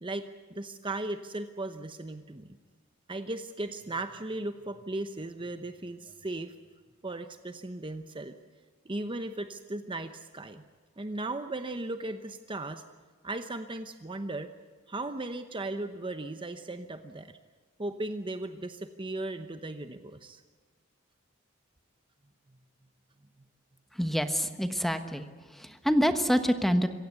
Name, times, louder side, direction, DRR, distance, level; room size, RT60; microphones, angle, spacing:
voice 1, 0.5-2.5 3.1-6.5 7.0-8.3 8.8-10.6 11.0-12.8 13.2-14.5 14.9-17.4 17.8-20.4, right 2 dB, 25° right, 8 dB, 0.9 m, -37 dB
voice 2, 24.0-25.2 25.6-26.9, equal, ahead, 8 dB, 1.2 m, -26 dB
26.5 x 16.0 x 8.1 m, 1.5 s
head